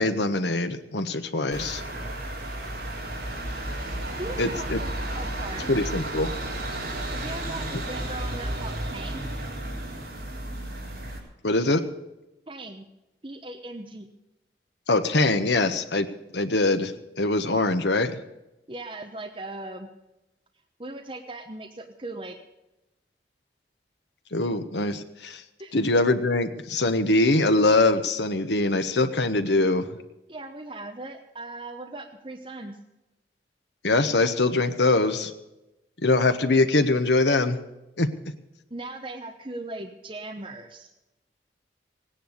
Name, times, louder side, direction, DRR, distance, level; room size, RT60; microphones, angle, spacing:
voice 1, 0.0-1.8 4.4-4.8 5.7-6.3 11.4-11.8 14.9-16.1 16.3-16.9 17.2-18.2 24.3-25.4 25.7-29.9 33.8-35.3 36.0-37.6 38.0-38.1, left 2 dB, 85° left, 9 dB, 1.3 m, -23 dB
sound 1, 1.5-11.2, right 1 dB, 60° right, 4.0 m, -33 dB
voice 2, 4.2-4.9 5.2-5.7 7.1-9.3 12.5-12.9 13.2-14.1 18.7-19.9 20.8-22.4 25.6-25.8 30.3-32.8 38.7-40.9, right 2 dB, 30° right, 3 dB, 1.0 m, -38 dB
17.5 x 10.0 x 6.7 m, 0.98 s
head